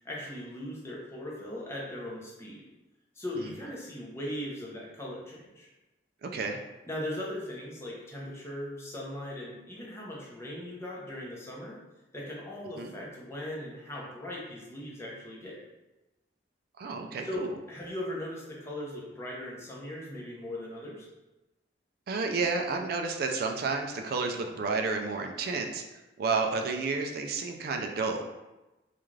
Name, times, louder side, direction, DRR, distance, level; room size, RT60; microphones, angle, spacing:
voice 1, 0.0-2.6 3.1-5.7 6.8-11.8 12.1-15.6 17.2-21.1, left 1 dB, 15° left, -4 dB, 0.6 m, -39 dB
voice 2, 6.2-6.6 12.8-12.9 16.8-17.5 22.1-25.8 26.2-28.2, right 4 dB, 55° right, 4 dB, 0.3 m, -31 dB
2.4 x 2.3 x 3.1 m, 1.0 s
head